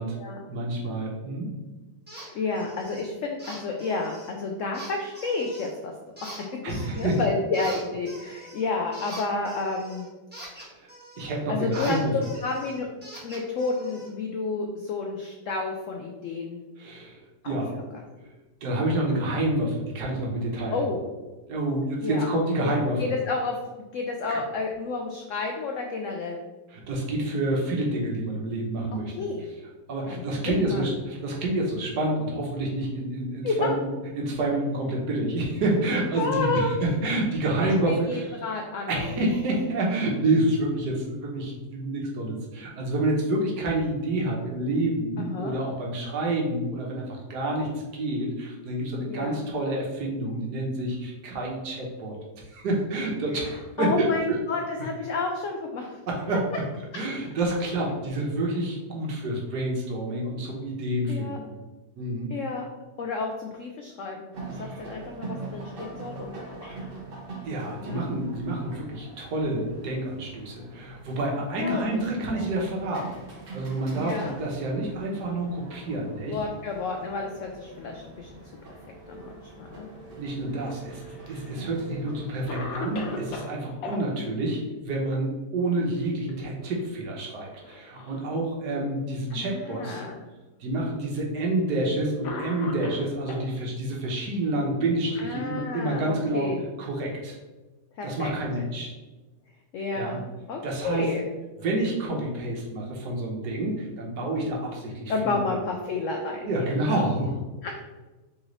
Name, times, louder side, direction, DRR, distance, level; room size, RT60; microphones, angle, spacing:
voice 1, 0.5-1.6 2.2-2.4 6.6-7.2 10.5-10.8 11.2-12.1 16.8-17.9 18.2-18.3 18.6-20.8 21.5-23.1 24.3-24.4 26.7-29.3 29.9-38.4 38.9-47.0 47.3-52.1 52.5-54.4 56.1-56.5 56.9-61.5 62.0-62.3 64.5-64.8 67.4-73.2 73.5-76.4 80.2-81.0 81.3-90.0 90.6-96.5 96.8-97.4 98.0-98.9 99.9-100.2 100.6-101.1 101.6-105.4 106.4-107.3, right 1 dB, 70° right, -2 dB, 1.5 m, -28 dB
sound 1, 2.1-2.3 2.5-3.0 3.4-4.3 4.7-5.7 6.2-7.3 7.5-11.3 11.7-14.1, right 1 dB, 5° right, 1.1 m, -43 dB
voice 2, 2.3-5.9 6.2-6.3 6.9-10.1 11.5-12.9 13.2-16.6 17.4-17.8 20.7-21.0 22.0-22.3 23.0-23.6 23.9-26.4 28.9-29.5 30.1-31.0 33.4-33.8 36.2-36.7 37.6-39.2 45.2-45.5 49.1-49.4 53.3-53.4 53.8-56.0 61.1-61.4 62.3-62.6 63.0-64.3 64.6-66.9 67.8-68.1 71.6-72.0 72.3-72.5 73.9-74.3 76.3-78.3 79.1-79.9 89.3-90.2 95.2-96.6 98.0-98.3 99.7-101.3 105.1-107.0 107.6-107.8, left 3 dB, 80° left, 2 dB, 0.7 m, -31 dB
sound 2, 64.3-83.4, right 3 dB, 45° right, 0.7 m, -43 dB
Cough, 80.7-81.5 82.1-82.2 82.5-84.0 85.9-86.3 86.6-86.8 87.6-88.3 89.1-89.2 90.2-90.3 91.4-91.6 92.2-93.5 94.5-95.9, left 2 dB, 65° left, 1.1 m, -37 dB
3.8 x 3.2 x 3.8 m, 1.2 s
omnidirectional pair, 1.8 m